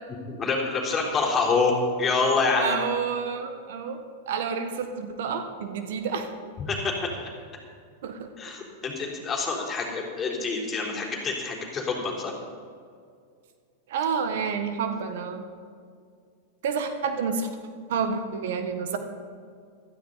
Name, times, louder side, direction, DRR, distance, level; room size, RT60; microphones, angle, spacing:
voice 1, 0.3-2.8 6.7-7.3 8.4-12.3, left 4 dB, 25° left, -2 dB, 3.7 m, -26 dB
voice 2, 2.6-6.3 8.0-8.3 13.9-15.4 16.6-17.5 17.9-19.0, right 6 dB, 70° right, 7 dB, 1.3 m, -29 dB
15.5 x 13.0 x 4.1 m, 2.2 s
hypercardioid pair, 105°, 0 cm